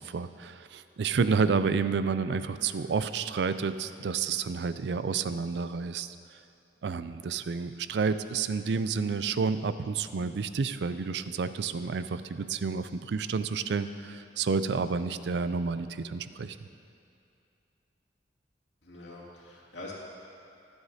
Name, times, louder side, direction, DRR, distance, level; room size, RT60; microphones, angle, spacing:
voice 1, 0.0-6.2 6.8-16.6, right 5 dB, 70° right, 12 dB, 0.4 m, -30 dB
voice 2, 18.8-19.9, left 2 dB, 85° left, -5 dB, 2.4 m, -44 dB
22.5 x 8.0 x 2.8 m, 2.6 s
head